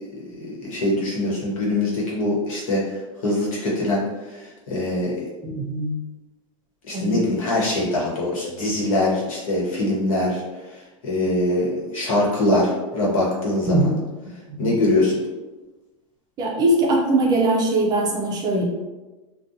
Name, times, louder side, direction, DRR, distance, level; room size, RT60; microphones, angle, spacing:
voice 1, 0.3-3.0 3.2-4.0 4.7-5.3 6.9-10.4 11.0-13.9 14.6-15.2, left 1 dB, 85° left, -4 dB, 1.1 m, -23 dB
voice 2, 5.4-6.0 6.9-7.2 13.7-14.0 14.5-14.7 16.4-18.6, right 2 dB, 25° right, -2 dB, 0.4 m, -21 dB
2.4 x 2.2 x 2.7 m, 1.2 s
supercardioid pair, 155°, 17 cm